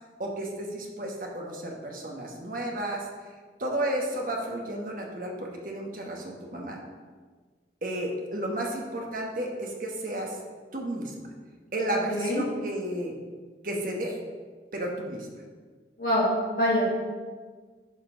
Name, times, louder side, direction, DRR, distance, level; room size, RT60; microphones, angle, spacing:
voice 1, 0.2-3.1 3.6-6.8 7.8-10.4 10.7-11.3 11.7-13.1 13.6-14.2 14.7-15.3, right 1 dB, 50° right, 0 dB, 1.2 m, -32 dB
voice 2, 12.1-12.4 16.0-16.9, equal, 55° left, -5 dB, 1.8 m, -25 dB
11.0 x 4.5 x 3.8 m, 1.5 s
head